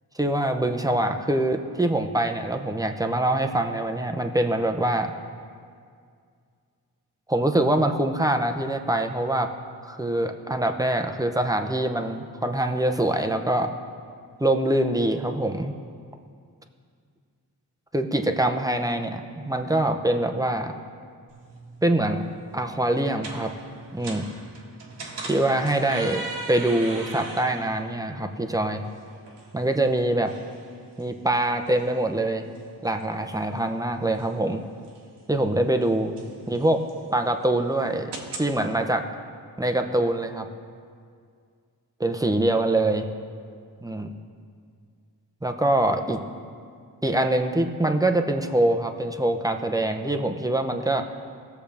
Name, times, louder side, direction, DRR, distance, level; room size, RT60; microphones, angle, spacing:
voice 1, 0.2-5.1 7.3-9.5 9.8-13.7 14.4-15.7 17.9-20.7 21.8-22.2 22.5-23.5 23.9-24.3 25.2-28.8 29.5-30.3 31.0-32.5 32.8-34.6 35.3-36.1 36.5-36.8 37.1-38.1 38.4-39.0 39.6-40.5 42.0-43.1 43.8-44.1 45.4-46.2 47.0-51.0, right 1 dB, 10° right, 4 dB, 0.7 m, -24 dB
sound 1, 21.3-38.5, right 2 dB, 80° right, 1.6 m, -42 dB
18.5 x 7.0 x 3.5 m, 2.2 s
cardioid pair, 75°, 40 cm